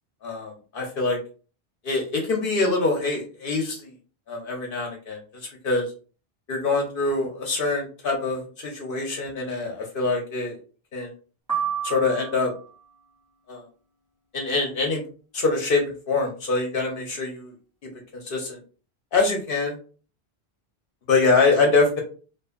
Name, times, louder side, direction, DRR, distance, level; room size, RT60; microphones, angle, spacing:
voice 1, 0.2-1.2 1.8-3.9 4.3-5.2 5.6-5.9 6.5-10.6 10.9-11.1 11.8-12.5 13.5-13.6 14.3-15.0 15.3-17.5 18.1-18.6 19.1-19.8 21.1-22.0, left 3 dB, 65° left, 1 dB, 0.8 m, -24 dB
sound 1, 11.5-12.8, right 8 dB, 20° right, 0.6 m, -30 dB
2.5 x 2.4 x 2.3 m, 0.37 s
omnidirectional pair, 1.1 m